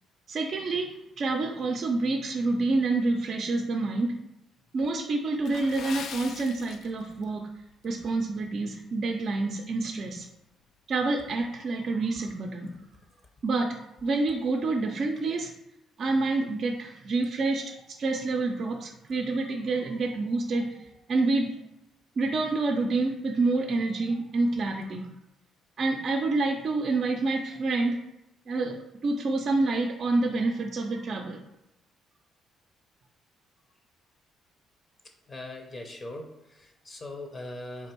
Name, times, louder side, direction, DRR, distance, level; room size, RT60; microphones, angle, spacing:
voice 1, 0.3-0.9 1.2-4.2 4.7-7.4 7.8-10.3 10.9-12.7 13.4-15.5 16.0-17.6 18.0-21.6 22.2-25.1 25.8-28.0 28.5-31.4, right 3 dB, 55° right, 2 dB, 0.5 m, -28 dB
Water / Splash splatter, 5.4-7.3 7.6-7.8 8.4-8.6 9.1-9.2, left 6 dB, 70° left, 0.3 m, -41 dB
voice 2, 35.3-37.9, left 1 dB, 35° left, 3 dB, 0.7 m, -40 dB
3.4 x 2.6 x 4.4 m, 0.88 s
supercardioid pair, 65°, 0 cm